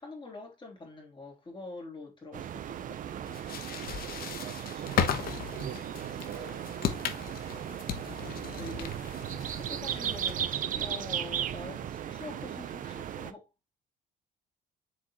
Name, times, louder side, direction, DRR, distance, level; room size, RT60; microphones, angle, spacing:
voice 1, 0.0-3.2 7.6-13.5, left 3 dB, 30° left, 3.4 m, -46 dB
sound 1, 2.3-13.3, right 10 dB, 50° right, 0.7 m, -36 dB
sound 2, 3.3-10.6, left 8 dB, 60° left, 1.1 m, -36 dB
voice 2, 4.4-7.0, right 8 dB, 85° right, 1.4 m, -45 dB
7.3 x 4.6 x 3.0 m
cardioid pair, 110°, 17 cm